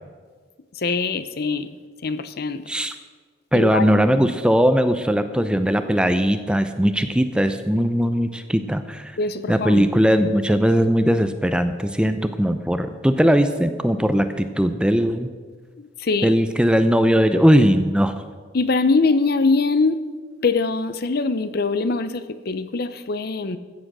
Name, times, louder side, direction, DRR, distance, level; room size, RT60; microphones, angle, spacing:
voice 1, 0.8-1.7 2.0-2.7 3.5-4.3 9.2-9.8 15.8-16.3 18.5-20.0 20.4-23.6, left 3 dB, 50° left, 12 dB, 0.6 m, -23 dB
voice 2, 3.5-9.1 9.5-15.3 16.2-18.1, equal, 5° right, 9 dB, 0.5 m, -19 dB
15.0 x 7.6 x 6.1 m, 1.5 s
head